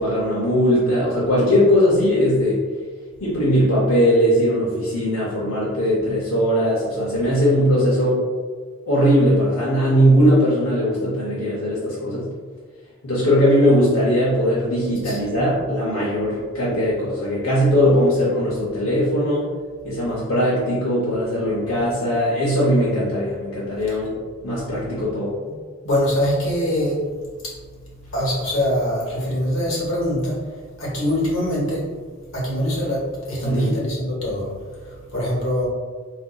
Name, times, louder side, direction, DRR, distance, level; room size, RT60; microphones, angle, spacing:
voice 1, 0.0-2.6 3.2-8.2 8.9-12.3 13.0-19.5 19.8-25.3 33.4-33.7, equal, 90° left, -7 dB, 0.7 m, -19 dB
voice 2, 25.8-27.0 28.1-30.4 30.8-31.8 32.3-34.5 35.1-35.7, equal, 70° left, -5 dB, 1.1 m, -23 dB
3.7 x 2.5 x 2.3 m, 1.5 s
head